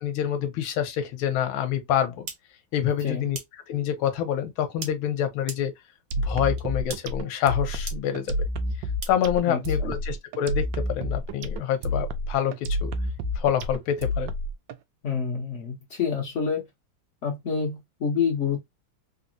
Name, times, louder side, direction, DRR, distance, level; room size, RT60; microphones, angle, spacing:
voice 1, 0.0-2.3 2.7-3.4 3.7-5.7 6.2-8.3 9.1-12.9 13.4-14.3, left 9 dB, 75° left, 1.5 m, -27 dB
sound 1, 2.3-2.4 3.4-3.5 4.8-4.9 5.5-5.6 6.6-6.7 6.9-7.0 7.9-8.0 9.0-9.1, right 4 dB, 55° right, 0.8 m, -35 dB
sound 2, 6.1-14.7, left 1 dB, 75° right, 1.1 m, -29 dB
voice 2, 9.4-10.0 15.0-16.6 17.2-18.6, left 6 dB, 60° left, 0.7 m, -28 dB
3.9 x 2.0 x 2.5 m
omnidirectional pair, 2.4 m